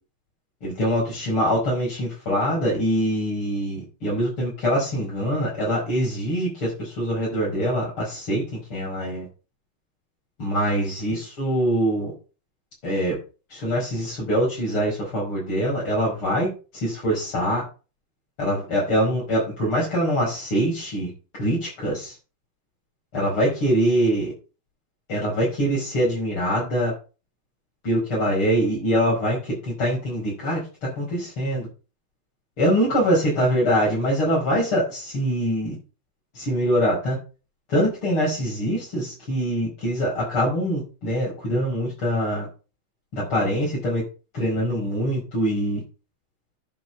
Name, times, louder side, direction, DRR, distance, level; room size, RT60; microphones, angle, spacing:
voice 1, 0.6-9.3 10.4-12.1 12.8-13.2 13.5-17.6 18.4-21.1 21.4-22.1 23.1-24.3 25.1-26.9 27.8-31.7 32.6-35.7 36.3-37.2 37.7-42.5 43.1-44.0 44.3-45.8, equal, 80° left, -6 dB, 6.4 m, -24 dB
10.5 x 5.6 x 7.1 m, 0.34 s
omnidirectional pair, 2.3 m